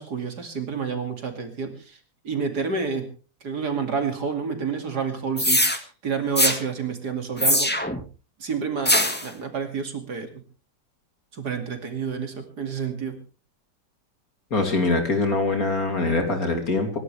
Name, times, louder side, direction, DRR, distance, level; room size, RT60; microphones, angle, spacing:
voice 1, 0.0-2.0 2.2-3.1 3.4-7.7 8.4-10.4 11.3-13.2, right 5 dB, 65° right, 6 dB, 3.1 m, -29 dB
sound 1, 5.4-5.8 6.4-6.6 7.4-8.0 8.9-9.3, left 1 dB, 5° left, 1.5 m, -21 dB
voice 2, 14.5-17.0, left 3 dB, 55° left, 5 dB, 3.4 m, -23 dB
26.5 x 12.0 x 3.4 m, 0.35 s
omnidirectional pair, 1.9 m